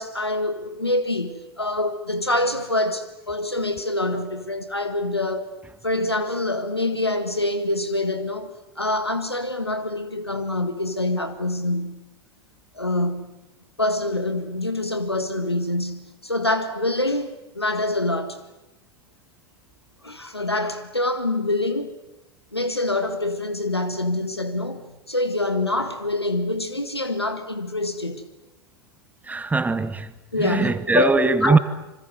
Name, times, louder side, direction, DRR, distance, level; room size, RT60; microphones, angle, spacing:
voice 1, 0.0-5.5 5.8-8.5 8.8-12.0 12.7-13.3 13.8-18.4 20.0-21.9 22.5-24.8 25.1-28.2 30.3-31.6, left 2 dB, 90° left, 1.9 m, -25 dB
voice 2, 29.2-31.6, right 4 dB, 10° right, 1.5 m, -21 dB
27.0 x 25.0 x 8.0 m
figure-of-eight pair, 80°, 13 cm